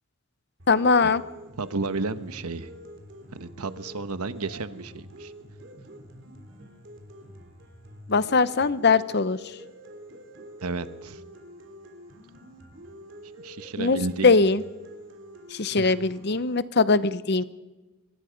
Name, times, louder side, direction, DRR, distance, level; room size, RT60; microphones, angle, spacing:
sound 1, 0.6-16.6, equal, 55° right, 3.4 m, -46 dB
voice 1, 0.7-1.2 8.1-9.4 13.8-14.6 15.5-17.4, left 4 dB, 50° left, 15 dB, 0.7 m, -21 dB
voice 2, 1.6-2.7 3.3-5.3 10.6-11.2 13.4-14.4 15.7-15.9, right 3 dB, 90° right, 12 dB, 1.1 m, -32 dB
25.0 x 21.0 x 5.2 m, 1.1 s
head